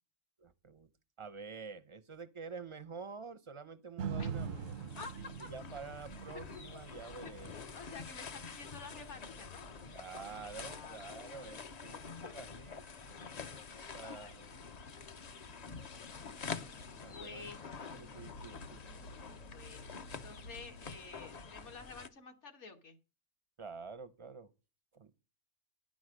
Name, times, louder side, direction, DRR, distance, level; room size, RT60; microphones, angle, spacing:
voice 1, 0.4-0.9 1.2-5.0 5.5-7.6 9.9-12.9 13.6-13.7 13.9-14.5 17.0-18.8 23.6-24.5 24.9-25.1, right 5 dB, 40° right, 0.4 m, -48 dB
sound 1, 4.0-12.1 12.6-12.7, right 6 dB, 90° right, 1.2 m, -45 dB
sound 2, 4.1-22.1, left 5 dB, 45° left, 0.5 m, -48 dB
sound 3, 4.3-21.1, left 2 dB, 80° left, 1.7 m, -58 dB
voice 2, 4.9-5.5 7.7-9.7 10.6-11.5 14.0-14.3 17.0-17.7 19.5-23.0, left 4 dB, 65° left, 1.6 m, -50 dB
10.5 x 6.3 x 6.3 m
omnidirectional pair, 1.3 m